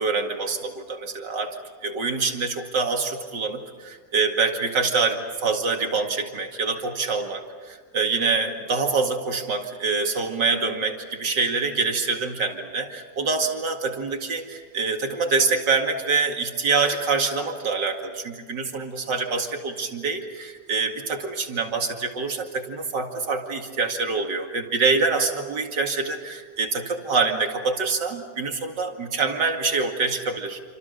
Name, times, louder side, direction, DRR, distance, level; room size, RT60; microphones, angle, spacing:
voice 1, 0.0-1.6 1.8-30.6, right 4 dB, 75° right, 3 dB, 2.8 m, -25 dB
28.5 x 25.5 x 6.7 m, 1.5 s
omnidirectional pair, 1.9 m